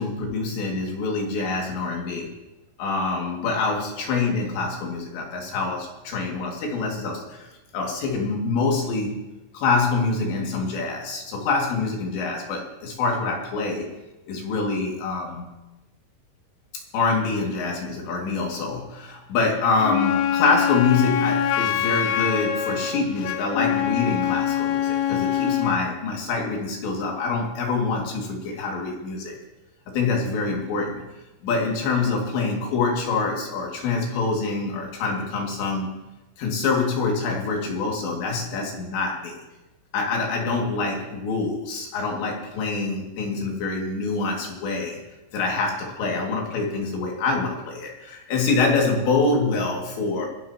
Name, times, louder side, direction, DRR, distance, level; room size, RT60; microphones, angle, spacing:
voice 1, 0.0-2.3 2.8-9.2 9.5-13.9 14.3-15.5 16.9-29.4 29.9-31.1 31.4-35.9 36.4-39.4 39.9-45.0 45.3-50.3, left 4 dB, 65° left, -1 dB, 4.3 m, -25 dB
Wind instrument woodwind instrument, 19.8-25.8, left 10 dB, 85° left, 3.4 m, -24 dB
27.5 x 11.0 x 2.9 m, 1.0 s
omnidirectional pair, 5.8 m